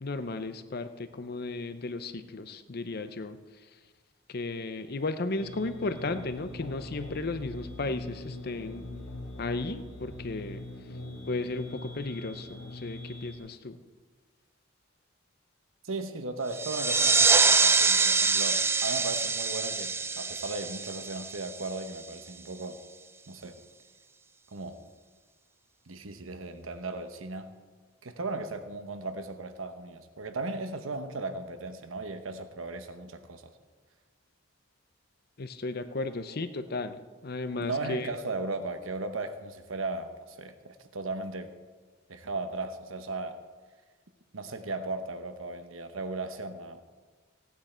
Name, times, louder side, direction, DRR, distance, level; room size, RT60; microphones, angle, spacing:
voice 1, 0.0-3.4 4.3-8.9 9.4-10.6 11.3-13.8 35.4-38.1, left 3 dB, 50° left, 11 dB, 0.7 m, -34 dB
sound 1, 5.4-13.4, left 2 dB, 90° left, 1.7 m, -42 dB
voice 2, 15.8-22.8 23.3-23.6 24.5-24.8 25.9-27.5 28.0-33.5 37.6-41.5 42.1-43.4 44.3-46.8, right 3 dB, 90° right, 8 dB, 1.0 m, -36 dB
sound 2, 16.5-21.8, right 4 dB, 10° right, 0.3 m, -25 dB
17.0 x 9.4 x 4.4 m, 1.4 s
head